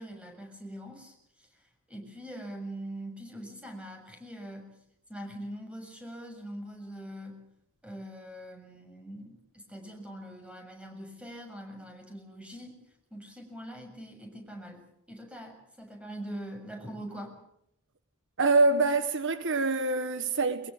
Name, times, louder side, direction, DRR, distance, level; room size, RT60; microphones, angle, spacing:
voice 1, 0.0-4.7 5.1-7.4 7.8-12.8 13.1-17.3, equal, 5° right, 7.1 m, -43 dB
voice 2, 18.4-20.7, right 3 dB, 60° right, 1.4 m, -25 dB
23.5 x 22.0 x 7.3 m
head